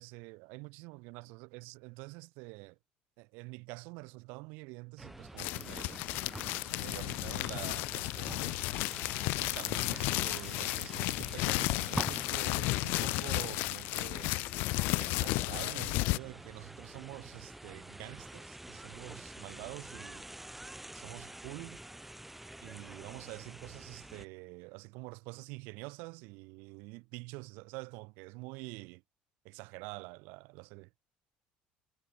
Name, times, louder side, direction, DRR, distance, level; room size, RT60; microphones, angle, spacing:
voice 1, 0.0-2.8 3.2-6.0 6.8-8.6 9.4-14.4 15.0-20.2 20.9-21.8 22.6-29.0 29.4-30.9, right 29 dB, 85° right, 2.5 m, -47 dB
sound 1, 5.0-24.3, right 1 dB, 5° right, 3.9 m, -47 dB
sound 2, 5.4-16.2, left 24 dB, 80° left, 0.9 m, -33 dB
cardioid pair, 135°, 3 cm